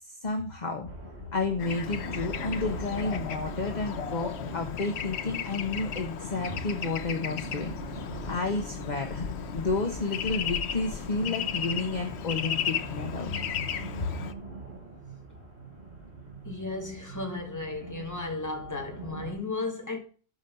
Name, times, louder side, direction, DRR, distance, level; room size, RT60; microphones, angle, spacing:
voice 1, 0.1-0.9 1.3-8.0 8.3-9.3 9.5-13.4 14.0-14.1, left 3 dB, 45° left, 1.3 m, -31 dB
sound 1, 0.9-19.3, right 3 dB, 75° right, 5.5 m, -42 dB
Bird / Traffic noise roadway noise, 1.6-14.3, left 8 dB, 80° left, 1.0 m, -35 dB
voice 2, 16.4-20.0, left 3 dB, 15° left, 2.4 m, -34 dB
12.5 x 5.3 x 5.4 m
omnidirectional pair, 1.1 m